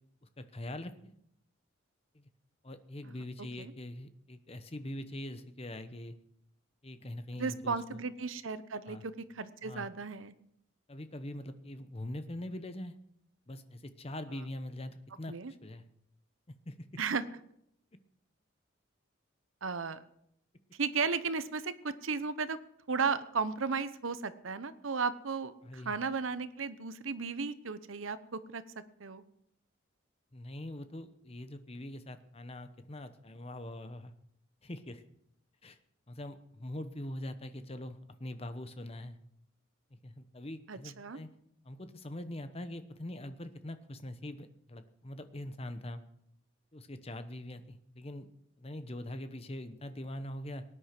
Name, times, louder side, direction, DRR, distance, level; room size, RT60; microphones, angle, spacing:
voice 1, 0.4-1.1 2.1-2.3 2.6-6.1 6.8-8.0 8.9-9.0 9.6-9.9 10.9-13.0 13.5-15.3 15.6-15.8 16.5-16.7 25.6-26.0 30.3-34.1 34.6-35.0 35.6-35.8 36.1-39.2 39.9-41.3 41.6-46.0 46.7-48.3 48.6-50.6, left 1 dB, 30° left, 10 dB, 0.9 m, -43 dB
voice 2, 7.3-10.3 15.3-15.5 17.0-17.2 19.6-20.0 20.7-22.6 22.9-28.6 29.0-29.2 40.7-41.2, right 5 dB, 80° right, 13 dB, 0.9 m, -35 dB
18.5 x 9.9 x 6.0 m, 0.75 s
head